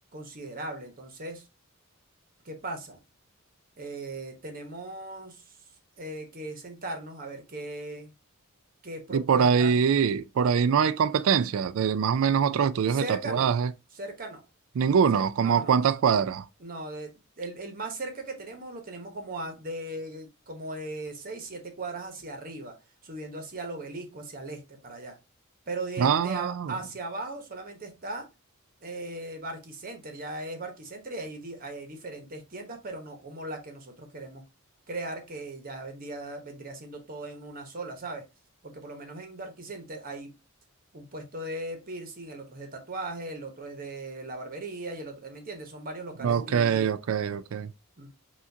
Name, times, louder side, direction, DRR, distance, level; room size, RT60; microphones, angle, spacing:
voice 1, 0.1-1.5 2.4-3.0 3.8-8.1 8.8-9.8 12.9-13.5 13.9-14.5 15.1-15.8 16.6-22.7 23.0-25.2 25.7-28.3 28.8-34.4 34.9-38.2 38.6-40.3 40.9-47.2 48.0-48.1, right 2 dB, 40° right, 1.0 m, -38 dB
voice 2, 9.1-13.7 14.8-16.5 26.0-26.7 46.2-47.7, right 7 dB, 65° right, 0.3 m, -24 dB
5.7 x 2.5 x 2.7 m
head